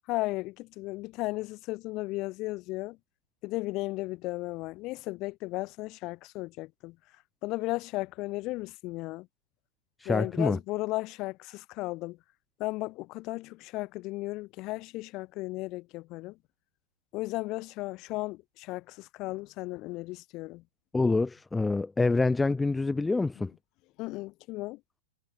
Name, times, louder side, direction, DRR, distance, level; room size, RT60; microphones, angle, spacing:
voice 1, 0.0-3.0 3.4-6.9 7.4-9.3 10.0-12.2 12.6-16.4 17.1-20.6 24.0-24.8, left 21 dB, 40° left, 4.9 m, -35 dB
voice 2, 10.0-10.6 20.9-23.5, left 3 dB, 10° left, 1.9 m, -26 dB
hypercardioid pair, 120°, 0 cm